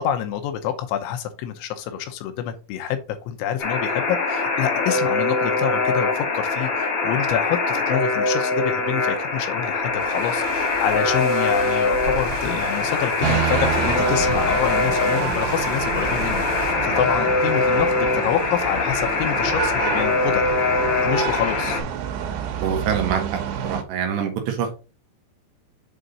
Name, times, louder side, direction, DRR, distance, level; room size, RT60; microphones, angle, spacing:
voice 1, 0.0-20.4 20.8-21.8, left 10 dB, 80° left, 7 dB, 3.1 m, -27 dB
Alarm, 3.6-21.8, left 3 dB, 50° left, 1.9 m, -23 dB
sound 1, 9.8-16.8, right 2 dB, 45° right, 3.0 m, -36 dB
sound 2, 13.2-23.8, right 9 dB, 90° right, 3.8 m, -28 dB
voice 2, 22.6-23.2 23.6-24.7, right 7 dB, 70° right, 3 dB, 3.1 m, -24 dB
8.0 x 3.7 x 3.9 m, 0.33 s
omnidirectional pair, 5.6 m